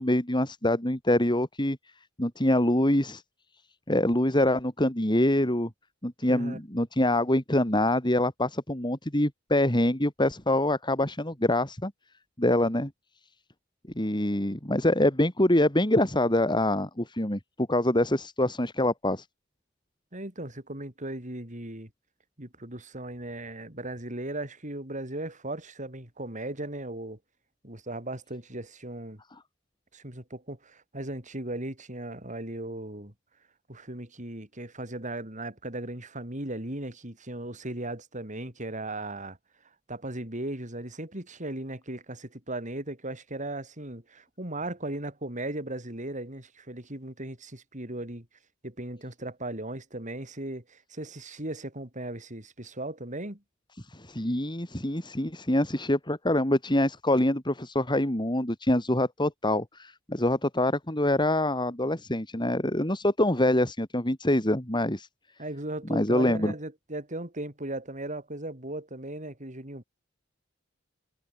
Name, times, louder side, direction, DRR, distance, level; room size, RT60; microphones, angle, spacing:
voice 1, 0.0-1.8 2.2-3.2 3.9-5.7 6.0-11.9 12.4-12.9 14.0-17.4 17.7-19.2 54.0-65.1 65.9-66.5, left 1 dB, 25° left, 3.8 m, -25 dB
voice 2, 20.1-21.9 22.4-27.2 27.6-29.2 29.9-33.1 33.7-39.4 39.9-48.3 48.6-53.4 65.4-69.8, right 1 dB, 40° right, 5.7 m, -37 dB
head